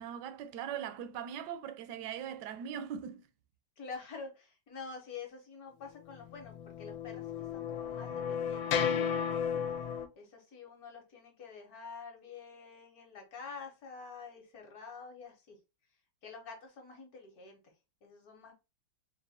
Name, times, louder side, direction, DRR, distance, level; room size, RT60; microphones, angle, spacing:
voice 1, 0.0-3.3, right 9 dB, 75° right, 1.1 m, -40 dB
voice 2, 3.8-9.2 10.2-15.6 16.2-17.6 18.0-18.5, left 5 dB, 55° left, 1.4 m, -48 dB
sound 1, 6.5-10.1, left 7 dB, 90° left, 1.4 m, -33 dB
4.1 x 2.4 x 4.1 m
omnidirectional pair, 2.1 m